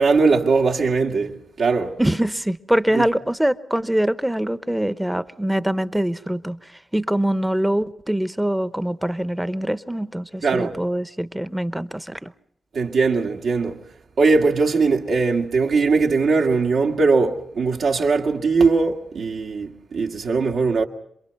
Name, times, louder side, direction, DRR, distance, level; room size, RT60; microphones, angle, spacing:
voice 1, 0.0-2.0 2.9-3.0 10.4-10.8 12.7-13.8 14.2-20.8, right 4 dB, 80° right, 2.1 m, -20 dB
voice 2, 2.0-12.3, right 1 dB, 5° right, 0.8 m, -23 dB
27.5 x 23.0 x 5.4 m
cardioid pair, 90°, 0 cm